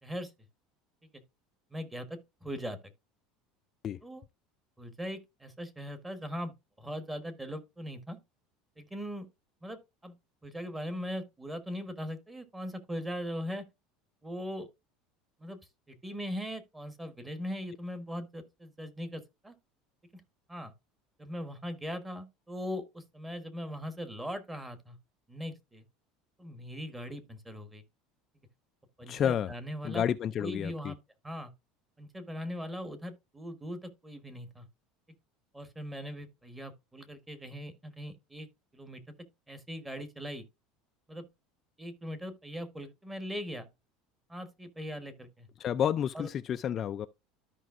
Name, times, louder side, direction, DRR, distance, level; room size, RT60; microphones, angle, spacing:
voice 1, 1.7-2.8 4.0-4.2 4.8-8.2 8.8-9.3 9.6-10.1 10.4-13.6 14.2-14.7 15.4-15.6 15.9-19.5 20.1-20.2 20.5-20.7 21.2-25.0 25.3-25.8 26.4-27.8 29.0-30.0 30.4-31.0 31.2-31.5 32.0-34.7 35.5-38.5 38.7-39.1 39.5-40.4 41.1-41.3 41.8-43.7 44.3-45.5 46.1-46.3, equal, 10° right, 1.2 m, -40 dB
voice 2, 29.1-29.5 29.8-30.9 45.6-47.1, left 9 dB, 35° left, 0.4 m, -30 dB
13.0 x 5.2 x 2.5 m
supercardioid pair, 135°, 0 cm